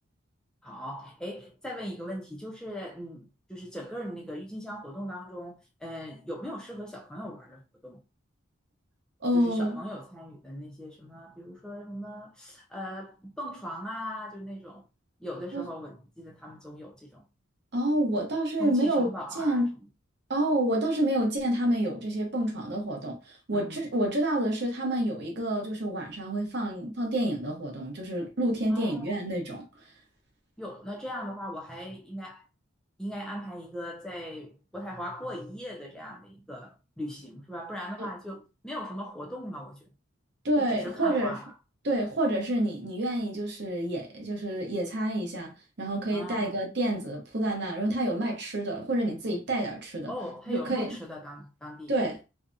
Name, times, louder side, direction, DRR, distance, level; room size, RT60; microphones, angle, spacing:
voice 1, 0.6-8.0 9.3-14.8 15.2-17.2 18.6-19.7 23.5-23.9 28.7-29.2 30.6-32.4 33.0-39.9 40.6-41.5 46.1-46.5 50.1-51.9, equal, 5° left, 0.4 m, -39 dB
voice 2, 9.2-9.8 15.5-15.6 17.7-19.1 19.3-19.7 20.3-29.6 38.0-38.1 40.4-41.4 41.8-45.5 45.8-50.1 50.5-51.0 51.9-52.2, right 1 dB, 55° right, 0.8 m, -28 dB
2.6 x 2.1 x 2.5 m
head